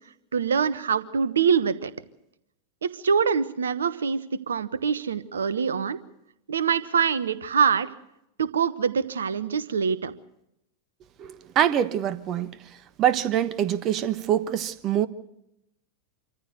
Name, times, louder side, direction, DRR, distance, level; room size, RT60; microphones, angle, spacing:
voice 1, 0.3-1.9 2.8-6.0 6.5-7.9 8.4-10.1, right 6 dB, 70° right, 1.1 m, -24 dB
voice 2, 11.2-12.5 13.0-15.1, right 10 dB, 35° right, 1.2 m, -24 dB
26.0 x 14.5 x 8.0 m
figure-of-eight pair, 90°, 0 cm